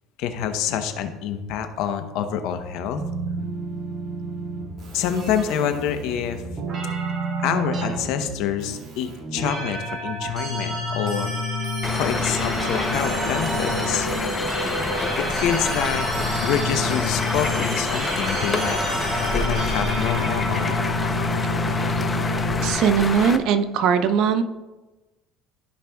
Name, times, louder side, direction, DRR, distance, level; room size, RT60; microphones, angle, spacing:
voice 1, 0.2-3.0 4.9-6.4 7.4-11.3 11.9-14.1 15.2-16.1 16.4-18.8 19.3-20.9, left 8 dB, 70° left, 8 dB, 0.8 m, -27 dB
sound 1, 2.9-22.7, equal, 40° right, 2.3 m, -28 dB
sound 2, 11.8-23.4, left 3 dB, 20° left, 0.5 m, -28 dB
voice 2, 22.6-24.4, right 7 dB, 65° right, 10 dB, 0.6 m, -20 dB
14.0 x 5.1 x 2.3 m, 1.1 s
cardioid pair, 125°, 0 cm